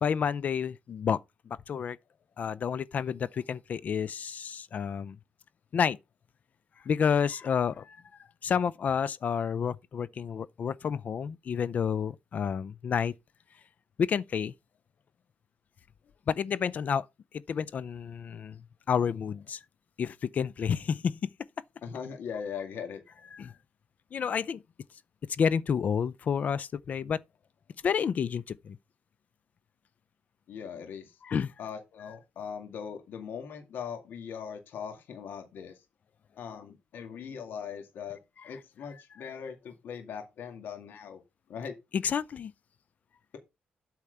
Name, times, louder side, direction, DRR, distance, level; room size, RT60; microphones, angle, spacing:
voice 1, 0.0-1.2 1.5-2.0 2.4-5.2 5.7-6.0 6.9-8.0 8.4-13.1 14.0-14.5 16.3-17.1 17.5-18.6 18.9-19.6 20.0-21.3 23.3-23.5 24.1-24.6 25.4-27.2 27.8-28.8 31.2-31.5 41.9-42.5, left 7 dB, 45° left, 0.5 m, -29 dB
voice 2, 21.8-23.0 30.5-31.1 31.6-35.8 36.4-38.2 38.4-41.2 41.5-41.7, left 7 dB, 80° left, 2.2 m, -40 dB
8.5 x 4.5 x 6.7 m
wide cardioid pair, 155°, 4 cm